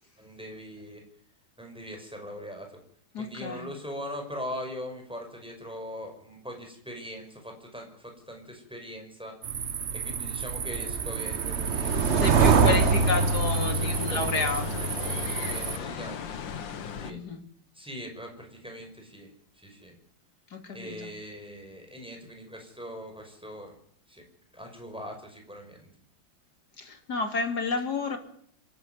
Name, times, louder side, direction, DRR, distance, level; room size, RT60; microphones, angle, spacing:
voice 1, 0.2-1.0 1.6-2.8 3.2-9.3 9.9-13.3 13.7-14.4 14.8-16.4 17.0-17.2 17.8-19.3 19.6-19.9 20.7-23.7 24.1-24.2 24.5-25.9, equal, ahead, 3 dB, 5.8 m, -41 dB
voice 2, 3.1-3.7 12.1-14.8 17.1-17.4 20.5-21.1 26.8-28.2, left 4 dB, 55° left, 6 dB, 3.0 m, -30 dB
sound 1, 9.4-15.8, right 5 dB, 45° right, 1.0 m, -25 dB
sound 2, 11.8-17.1, left 7 dB, 70° left, 2.0 m, -38 dB
26.0 x 12.0 x 9.5 m, 0.65 s
omnidirectional pair, 2.2 m